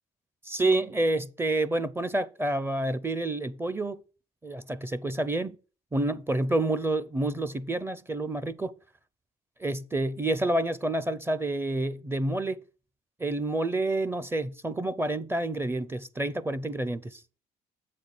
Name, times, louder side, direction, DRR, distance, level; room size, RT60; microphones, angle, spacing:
voice 1, 0.4-4.0 4.4-5.6 5.9-8.7 9.6-12.6 13.2-17.2, right 2 dB, 15° right, 0.5 m, -28 dB
7.8 x 4.2 x 6.5 m
cardioid pair, 110°, 17 cm